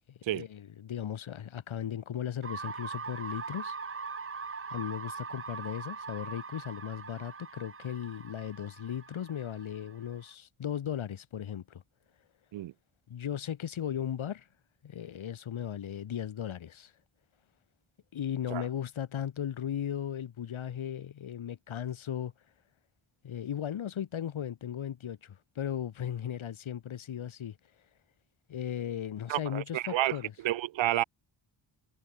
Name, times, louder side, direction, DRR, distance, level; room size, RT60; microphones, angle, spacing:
voice 1, 0.1-3.8 4.7-11.8 13.1-14.5 14.8-16.9 18.1-22.3 23.2-27.6 28.5-30.3, left 9 dB, 85° left, 4.0 m, -37 dB
sound 1, 2.4-10.3, right 5 dB, 25° right, 1.1 m, -41 dB
voice 2, 29.3-30.2 30.4-31.0, right 14 dB, 70° right, 0.6 m, -30 dB
cardioid pair, 60°, 47 cm